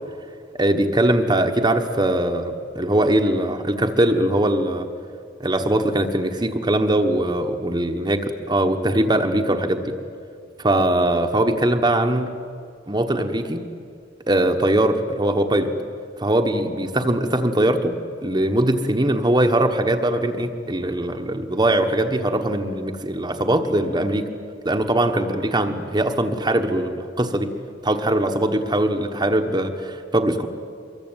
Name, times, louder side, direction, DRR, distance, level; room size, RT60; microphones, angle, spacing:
voice 1, 0.5-4.9 5.4-8.2 8.5-9.9 10.6-12.3 12.9-13.7 14.3-15.7 16.2-24.3 24.6-27.5 27.8-30.5, right 1 dB, 25° right, 4 dB, 1.2 m, -21 dB
25.0 x 23.0 x 9.0 m, 2.4 s
head